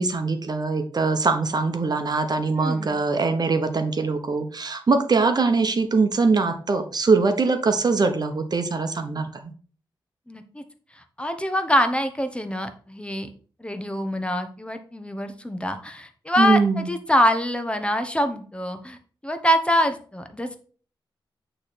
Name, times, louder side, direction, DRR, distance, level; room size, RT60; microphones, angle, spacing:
voice 1, 0.0-9.5 16.4-16.9, right 4 dB, 50° right, 8 dB, 1.0 m, -22 dB
voice 2, 2.5-2.9 10.3-10.6 11.0-13.3 13.6-19.0 19.2-20.6, equal, 10° left, 7 dB, 1.0 m, -25 dB
8.6 x 3.4 x 4.3 m, 0.41 s
cardioid pair, 55°, 9 cm